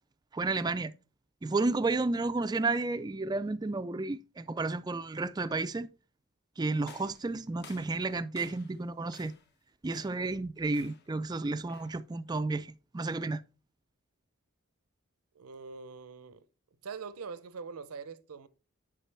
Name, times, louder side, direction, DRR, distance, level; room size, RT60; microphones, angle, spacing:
voice 1, 0.3-0.9 1.4-5.9 6.6-9.3 9.8-13.4, right 3 dB, 20° right, 0.3 m, -32 dB
sound 1, 6.8-8.8 9.1-9.5 9.9-10.3 10.7-11.2 11.7-12.1, left 5 dB, 50° left, 0.9 m, -55 dB
voice 2, 15.3-16.4 16.8-18.5, right 5 dB, 85° right, 0.6 m, -43 dB
10.0 x 4.9 x 3.3 m
head